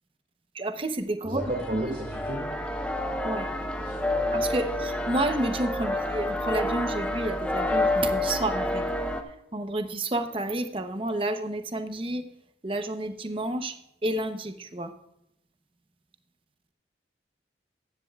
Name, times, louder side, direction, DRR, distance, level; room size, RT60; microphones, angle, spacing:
voice 1, 0.5-1.4 1.7-1.8 3.2-3.5 4.3-8.8 9.5-12.2 12.6-13.8 14.0-14.9, right 1 dB, 30° right, 7 dB, 0.8 m, -30 dB
voice 2, 1.2-2.5 3.8-4.3, right 1 dB, 50° right, -1 dB, 2.1 m, -33 dB
sound 1, 1.4-9.2, left 1 dB, 5° left, 0.8 m, -29 dB
14.5 x 10.5 x 2.4 m, 0.82 s
head